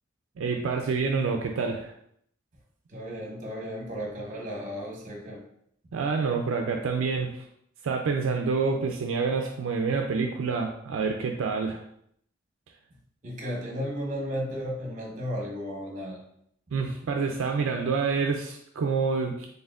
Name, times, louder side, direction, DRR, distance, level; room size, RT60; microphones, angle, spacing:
voice 1, 0.4-1.9 5.9-7.4 7.8-11.8 16.7-19.5, right 4 dB, 75° right, 3 dB, 0.4 m, -27 dB
voice 2, 2.9-5.4 13.2-16.2, equal, 40° right, 0 dB, 1.0 m, -34 dB
4.2 x 3.3 x 2.4 m, 0.69 s
head